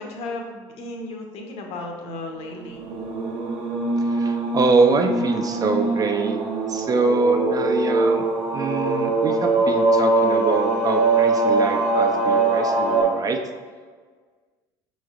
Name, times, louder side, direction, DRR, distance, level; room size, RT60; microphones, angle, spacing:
voice 1, 0.0-2.8, left 2 dB, 60° left, 2 dB, 0.7 m, -34 dB
sound 1, 2.7-13.0, right 2 dB, 55° right, 0.8 m, -22 dB
voice 2, 4.0-6.4 6.7-8.3 8.5-13.4, right 4 dB, 30° right, 5 dB, 0.4 m, -24 dB
5.1 x 3.1 x 2.4 m, 1.5 s
hypercardioid pair, 70°, 12 cm